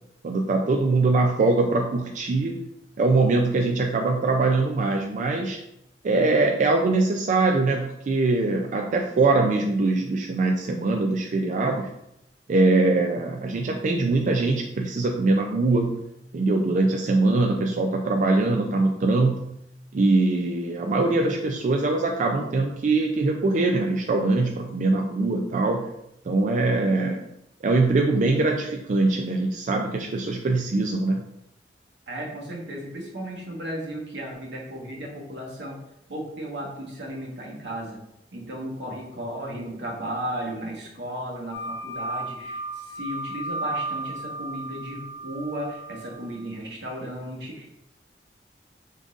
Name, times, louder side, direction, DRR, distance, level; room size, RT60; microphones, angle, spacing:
voice 1, 0.2-2.6 3.0-5.6 6.0-11.9 12.5-16.0 16.3-19.5 19.9-25.9 26.3-27.2 27.6-31.2, right 3 dB, 45° right, 2 dB, 0.3 m, -22 dB
voice 2, 32.1-35.8 36.1-38.0 38.3-47.7, equal, 80° right, -2 dB, 1.3 m, -35 dB
sound 1, 41.5-46.4, right 2 dB, 75° left, 0.5 m, -34 dB
5.2 x 3.7 x 2.4 m, 0.82 s
head